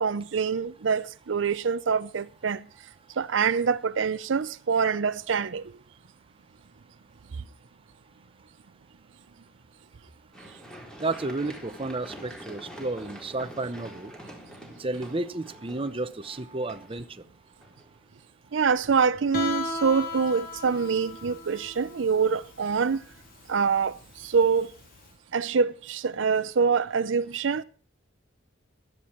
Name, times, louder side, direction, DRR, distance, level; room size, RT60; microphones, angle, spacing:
voice 1, 0.0-2.6 3.2-5.6 18.5-23.0 23.5-24.7 25.3-27.6, right 5 dB, 75° right, 0.5 m, -25 dB
Run, 10.3-18.2 18.7-18.8, equal, 5° left, 4.0 m, -46 dB
voice 2, 11.0-14.1 14.8-17.1, right 2 dB, 30° right, 0.8 m, -32 dB
Guitar, 19.3-25.0, left 3 dB, 50° left, 3.0 m, -36 dB
16.0 x 12.0 x 4.4 m
head